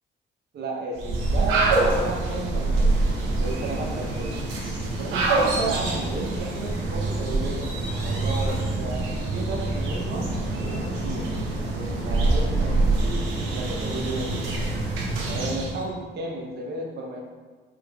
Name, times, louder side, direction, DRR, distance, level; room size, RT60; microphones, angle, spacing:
voice 1, 0.5-3.0 3.3-4.3 5.0-7.7 8.0-10.3 10.6-11.3 11.7-14.4 15.3-17.2, right 3 dB, 60° right, -1 dB, 0.7 m, -33 dB
sound 1, 0.9-15.8, right 2 dB, 90° right, 0.8 m, -25 dB
5.2 x 3.4 x 2.3 m, 1.4 s
cardioid pair, 90°, 20 cm